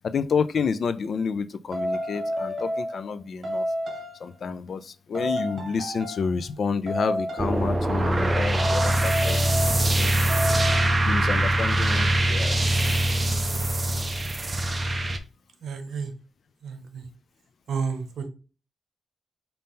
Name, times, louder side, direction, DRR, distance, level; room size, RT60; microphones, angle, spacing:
voice 1, 0.0-3.7 4.2-10.1 11.0-13.0, left 5 dB, 55° left, 0.3 m, -30 dB
sound 1, 1.7-3.1 3.4-4.3 5.1-6.4 6.9-7.6 8.6-10.0 10.3-11.0, equal, 45° right, 1.4 m, -30 dB
sound 2, 7.4-15.2, right 1 dB, 25° right, 0.5 m, -23 dB
voice 2, 15.6-16.1 16.6-17.1 17.7-18.3, right 5 dB, 85° right, 0.7 m, -31 dB
5.4 x 2.7 x 3.6 m
wide cardioid pair, 145°, 0 cm